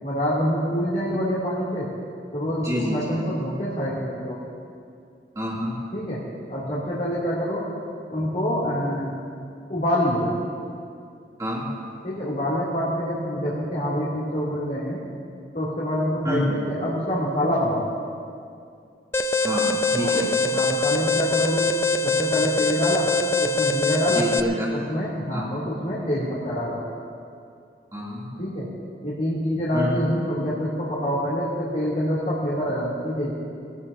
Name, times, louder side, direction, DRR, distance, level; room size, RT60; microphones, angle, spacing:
voice 1, 0.0-1.9 2.3-4.4 5.9-6.2 6.5-7.6 8.1-9.2 9.7-10.3 12.0-15.0 15.5-17.8 19.9-20.2 20.4-21.7 22.0-23.1 23.4-24.3 24.7-26.8 28.4-28.7 29.0-33.3, equal, 45° left, -9 dB, 2.8 m, -26 dB
voice 2, 2.6-3.2 5.3-5.8 11.4-11.7 16.2-16.7 19.4-20.3 24.1-24.7 25.3-25.5 27.9-28.3 29.7-30.1, equal, 20° right, -6 dB, 2.7 m, -27 dB
Alarm, 19.1-24.4, left 2 dB, 15° left, 0.4 m, -23 dB
20.5 x 17.0 x 2.8 m, 2.4 s
head